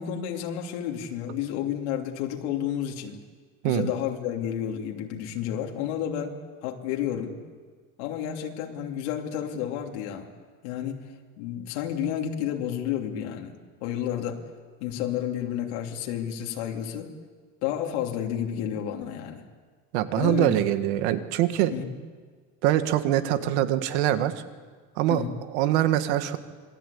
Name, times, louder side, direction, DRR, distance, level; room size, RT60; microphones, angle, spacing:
voice 1, 0.0-3.2 3.6-7.4 8.0-10.3 10.6-11.1 11.4-13.5 13.8-14.4 14.8-17.1 17.6-19.4 20.2-20.5 21.7-21.9 25.1-25.4, left 10 dB, 90° left, 1 dB, 3.1 m, -31 dB
voice 2, 19.9-21.7 22.6-24.4 25.0-25.2 25.5-26.4, right 13 dB, 80° right, 9 dB, 1.9 m, -24 dB
27.0 x 21.5 x 8.5 m, 1.5 s
cardioid pair, 180°, 34 cm